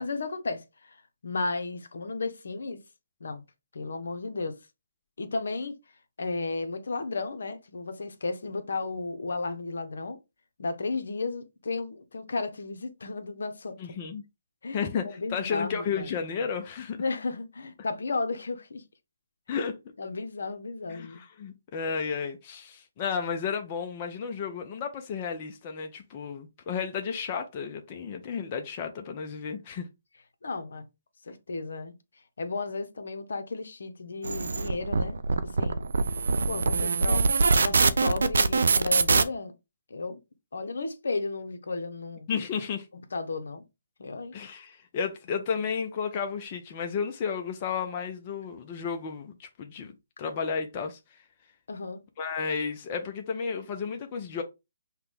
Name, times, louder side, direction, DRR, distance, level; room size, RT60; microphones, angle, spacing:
voice 1, 0.0-2.8 3.2-3.4 3.7-4.6 5.2-5.8 6.2-10.2 10.6-14.0 14.6-16.1 17.0-18.8 19.5-19.7 20.0-21.2 30.4-30.9 31.2-31.9 32.4-35.2 35.4-35.8 36.5-37.2 37.6-39.5 39.9-40.2 40.5-42.3 42.9-43.6 44.0-44.3 51.7-52.0, left 3 dB, 75° left, 0.8 m, -34 dB
voice 2, 13.8-14.2 14.7-17.0 19.5-19.8 20.9-29.9 42.3-42.9 44.3-49.9 50.2-51.2 52.2-54.4, left 6 dB, 30° left, 0.5 m, -32 dB
sound 1, 34.2-39.2, right 4 dB, 75° right, 0.4 m, -23 dB
5.7 x 2.2 x 3.5 m
hypercardioid pair, 155°, 0 cm